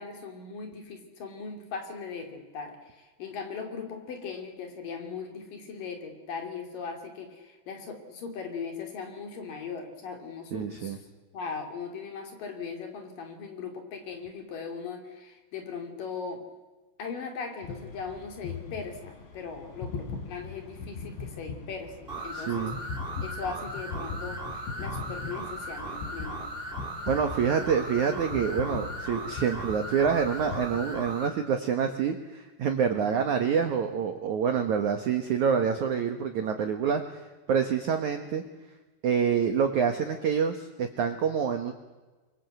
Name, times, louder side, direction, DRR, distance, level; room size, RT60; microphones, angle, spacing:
voice 1, 0.0-11.1 11.3-16.4 17.0-22.7 23.2-26.5, left 5 dB, 50° left, 4 dB, 4.0 m, -39 dB
voice 2, 10.5-11.0 22.3-22.7 27.1-37.2 37.5-38.4 39.0-41.7, right 7 dB, 85° right, 6 dB, 1.7 m, -27 dB
sound 1, 17.6-30.8, left 5 dB, 65° left, 6.2 m, -40 dB
sound 2, 22.1-31.3, right 1 dB, 50° right, 0.6 m, -38 dB
25.5 x 23.5 x 8.0 m, 1.2 s
omnidirectional pair, 5.7 m